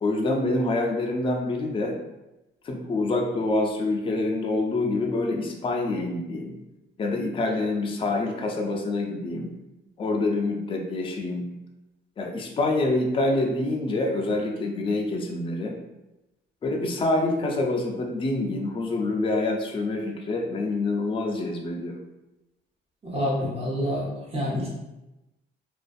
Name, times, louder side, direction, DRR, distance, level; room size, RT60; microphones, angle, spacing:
voice 1, 0.0-2.0 2.6-6.6 7.0-9.5 10.0-11.5 12.2-15.8 16.6-22.0, left 2 dB, 25° left, 1 dB, 0.4 m, -26 dB
voice 2, 23.0-24.7, equal, 30° right, -5 dB, 0.9 m, -27 dB
2.4 x 2.4 x 2.4 m, 0.97 s
cardioid pair, 90°, 20 cm